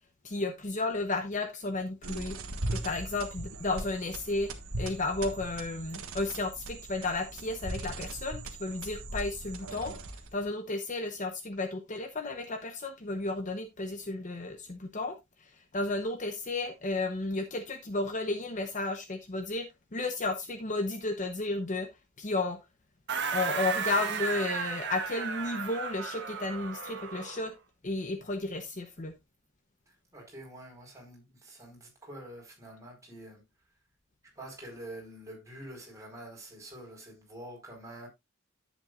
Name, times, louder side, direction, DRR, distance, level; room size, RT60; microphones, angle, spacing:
voice 1, 0.2-2.4 2.7-4.5 4.8-9.9 10.3-21.9 22.2-22.6 23.3-27.5 27.8-29.1, left 2 dB, 35° left, 0.9 m, -33 dB
sound 1, 2.0-10.4, right 2 dB, 70° right, 1.5 m, -39 dB
sound 2, 23.1-27.5, right 6 dB, 50° right, 1.4 m, -34 dB
voice 2, 30.1-33.4 34.3-38.1, right 1 dB, 15° right, 4.7 m, -46 dB
10.5 x 8.5 x 2.5 m
head